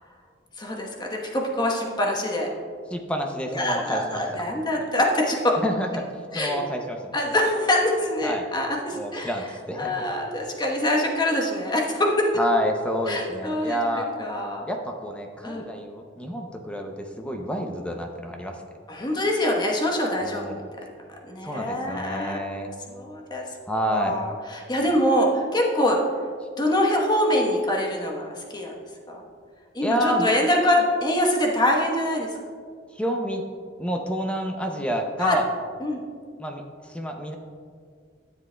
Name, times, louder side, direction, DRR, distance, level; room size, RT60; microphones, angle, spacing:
voice 1, 0.6-2.5 3.5-5.6 6.3-6.6 7.1-9.3 9.8-12.3 13.1-14.7 15.4-15.7 18.9-20.6 21.2-23.4 23.9-26.0 26.6-28.7 29.1-29.2 29.7-32.3 35.2-35.4 35.8-36.0, left 1 dB, 25° left, 0 dB, 1.1 m, -24 dB
voice 2, 2.9-4.4 5.6-6.0 6.3-7.1 8.2-8.5 8.9-10.1 12.3-14.1 14.7-18.6 20.2-20.6 21.4-22.7 23.7-24.2 29.8-30.3 32.9-33.4 33.8-35.5 36.4-37.4, equal, 5° left, 3 dB, 0.5 m, -28 dB
12.5 x 7.5 x 2.2 m, 2.1 s
head